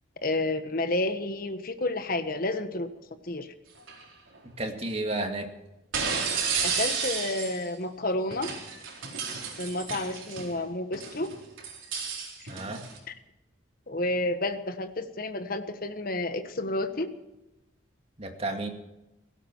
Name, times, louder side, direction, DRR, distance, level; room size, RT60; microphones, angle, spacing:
voice 1, 0.2-2.9 3.2-3.5 6.6-8.5 9.6-11.3 13.9-17.1, left 2 dB, 45° left, 8 dB, 1.4 m, -30 dB
sound 1, 3.8-4.0 5.9-7.7 8.3-10.5 10.9-13.0, right 5 dB, 90° right, 4.3 m, -32 dB
voice 2, 4.6-5.5 12.5-12.9 18.2-18.7, right 2 dB, 30° right, 4 dB, 2.2 m, -32 dB
17.5 x 16.5 x 4.6 m, 0.96 s
head